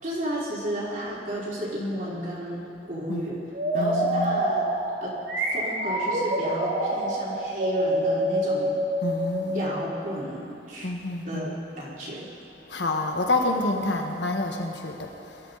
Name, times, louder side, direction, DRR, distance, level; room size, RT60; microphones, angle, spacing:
voice 1, 0.0-3.4 3.7-4.6 5.0-5.1 5.5-8.7 9.4-10.9 11.2-12.3 14.0-14.1, right 1 dB, 50° right, -7 dB, 4.0 m, -33 dB
sound 1, 3.5-10.2, right 1 dB, 80° right, 2.9 m, -26 dB
voice 2, 3.7-4.5 9.0-9.8 10.8-11.5 12.7-15.6, left 2 dB, 90° left, 3 dB, 1.5 m, -28 dB
22.5 x 13.0 x 4.1 m, 2.9 s
head